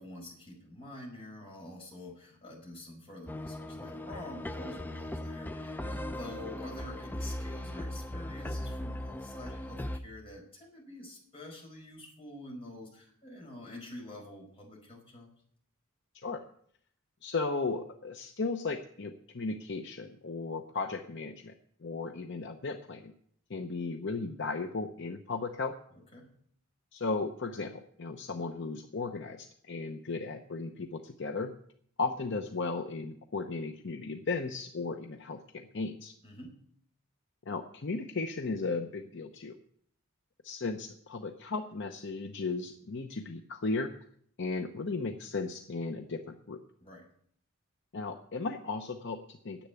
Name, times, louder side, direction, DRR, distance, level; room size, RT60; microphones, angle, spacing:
voice 1, 0.0-15.3 25.9-26.3 36.2-36.6 46.8-47.0, left 1 dB, 25° left, -1 dB, 5.2 m, -47 dB
sound 1, 3.3-10.0, left 1 dB, 10° left, 0.5 m, -38 dB
voice 2, 17.2-21.5 21.8-23.1 23.5-25.7 26.9-31.5 32.0-36.1 37.5-39.6 40.4-43.9 44.4-46.6 47.9-49.7, left 3 dB, 55° left, 5 dB, 0.8 m, -35 dB
10.0 x 7.9 x 9.4 m, 0.64 s
head